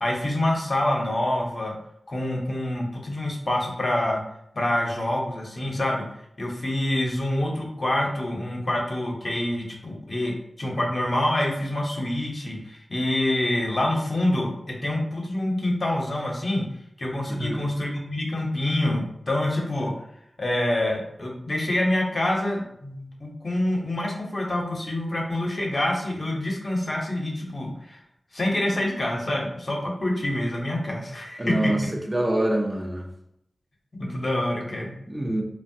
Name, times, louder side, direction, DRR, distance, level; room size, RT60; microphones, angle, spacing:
voice 1, 0.0-1.8 2.1-4.2 4.5-6.1 6.4-16.6 17.0-19.9 20.4-28.0 28.3-31.7 33.9-34.9, left 1 dB, 50° left, -1 dB, 0.8 m, -26 dB
voice 2, 31.4-33.1 35.1-35.4, right 1 dB, 20° right, 0 dB, 0.6 m, -25 dB
3.2 x 2.1 x 2.7 m, 0.75 s
cardioid pair, 45°, 0 cm